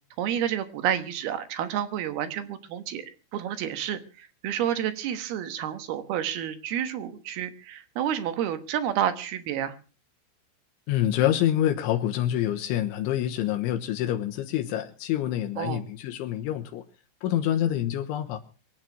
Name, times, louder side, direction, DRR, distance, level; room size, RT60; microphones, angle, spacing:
voice 1, 0.2-3.0 3.3-9.8 15.6-15.8, right 10 dB, 65° right, 10 dB, 2.8 m, -30 dB
voice 2, 10.9-16.8 17.2-18.4, left 12 dB, 80° left, 5 dB, 3.4 m, -26 dB
24.0 x 8.9 x 6.0 m, 0.37 s
omnidirectional pair, 5.6 m